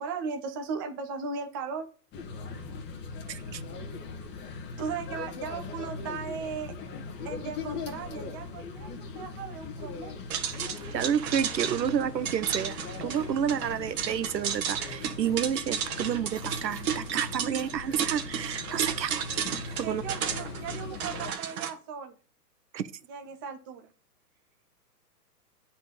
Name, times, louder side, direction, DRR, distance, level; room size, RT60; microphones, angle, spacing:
voice 1, 0.0-1.9 4.8-6.7 7.2-10.2 19.8-22.2 23.1-23.9, right 5 dB, 15° right, 0.4 m, -37 dB
sound 1, 2.1-21.3, left 4 dB, 20° left, 1.5 m, -40 dB
voice 2, 3.3-3.6 10.9-12.8 13.0-19.5 19.8-20.0 22.7-22.9, right 8 dB, 90° right, 0.8 m, -30 dB
sound 2, 10.3-21.7, right 8 dB, 60° right, 1.6 m, -33 dB
8.7 x 4.4 x 6.6 m
hypercardioid pair, 130°, 49 cm